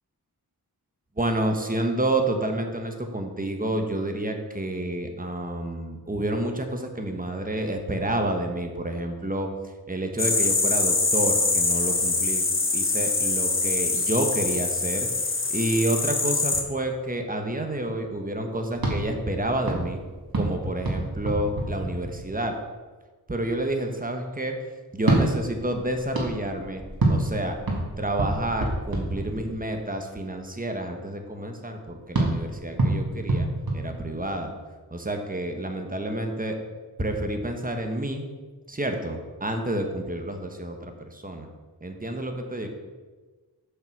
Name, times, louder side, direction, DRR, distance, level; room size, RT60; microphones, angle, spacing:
voice 1, 1.2-9.5 9.9-12.4 12.7-15.1 15.5-20.0 20.3-22.5 23.3-24.6 24.9-26.8 27.1-27.6 28.0-34.5 34.9-36.6 37.0-38.3 38.7-41.5 41.8-42.7, right 1 dB, 20° right, 4 dB, 1.2 m, -29 dB
sound 1, 10.2-16.6, left 3 dB, 35° left, 0.9 m, -24 dB
sound 2, 18.7-22.6 24.9-29.8 32.1-34.6, right 2 dB, 65° right, 2.0 m, -28 dB
7.4 x 5.7 x 6.0 m, 1.3 s
wide cardioid pair, 65°, 38 cm